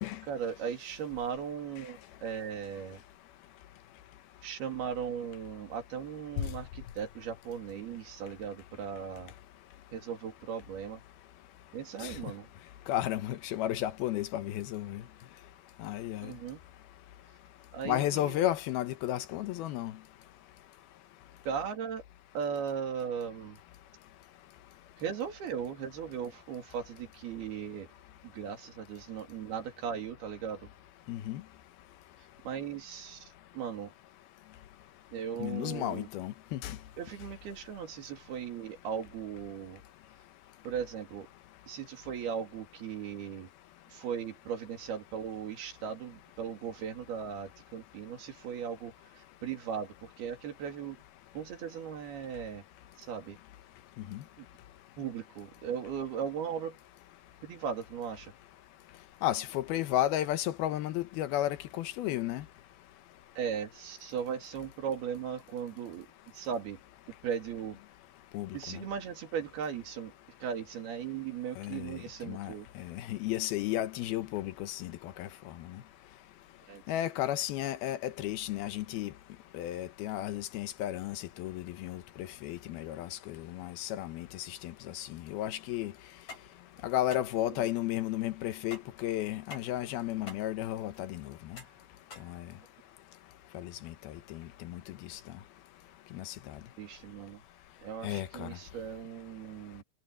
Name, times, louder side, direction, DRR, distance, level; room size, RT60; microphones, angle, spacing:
voice 1, 0.3-3.0 4.4-9.3 9.9-11.0 11.7-12.5 16.2-16.6 17.7-18.4 21.5-22.0 22.3-23.6 25.0-27.9 28.2-30.7 32.4-33.9 35.1-36.1 37.0-39.8 40.6-41.3 41.7-43.5 43.9-51.0 51.3-52.6 53.0-53.4 54.4-54.5 55.0-56.8 57.4-58.3 63.4-66.1 66.3-66.8 67.2-67.8 68.5-70.1 70.4-72.7 76.7-76.8 87.5-87.6 96.8-97.4 97.8-99.8, right 7 dB, 85° right, 4.7 m, -38 dB
voice 2, 12.9-15.0 15.8-16.3 17.9-19.9 31.1-31.4 35.4-36.8 54.1-54.2 59.2-62.4 68.3-68.8 71.6-72.5 72.8-74.9 75.2-75.3 76.9-79.1 79.5-85.9 86.8-91.2 92.3-92.4 93.5-94.8 95.1-95.2 96.1-96.3 98.0-98.5, left 13 dB, 80° left, 2.9 m, -33 dB
sound 1, 86.1-93.0, left 3 dB, 50° left, 9.2 m, -51 dB
omnidirectional pair, 4.4 m